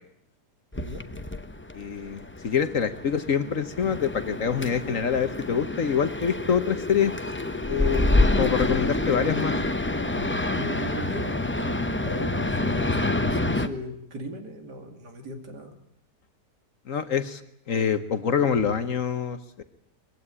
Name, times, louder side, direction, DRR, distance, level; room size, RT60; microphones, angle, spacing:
sound 1, 0.7-13.7, left 2 dB, 15° left, 0.3 m, -27 dB
voice 1, 1.7-7.1 7.6-9.5 16.9-17.4 17.7-19.6, left 7 dB, 55° left, 11 dB, 1.3 m, -26 dB
voice 2, 10.1-15.7, equal, 70° right, 5 dB, 3.1 m, -38 dB
21.5 x 15.5 x 9.8 m, 0.75 s
omnidirectional pair, 1.8 m